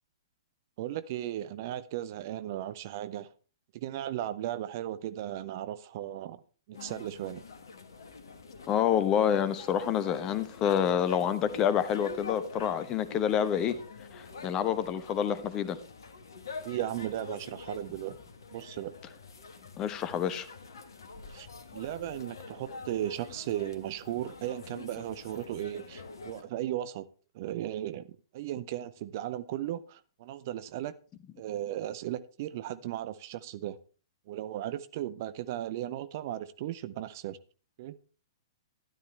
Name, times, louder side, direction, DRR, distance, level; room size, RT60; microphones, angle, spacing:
voice 1, 0.8-3.3 3.7-6.4 6.7-7.4 16.6-18.1 18.5-18.9 21.3-21.5 21.7-27.1 27.3-31.0 31.4-33.8 34.3-37.4 37.8-38.0, right 12 dB, 40° right, 14 dB, 0.6 m, -36 dB
sound 1, 6.7-26.4, left 4 dB, 60° left, 1.5 m, -46 dB
voice 2, 8.7-13.8 14.1-15.8 19.8-20.5, left 9 dB, 25° left, 13 dB, 1.0 m, -28 dB
12.5 x 11.5 x 3.2 m, 0.38 s
figure-of-eight pair, 115°, 3 cm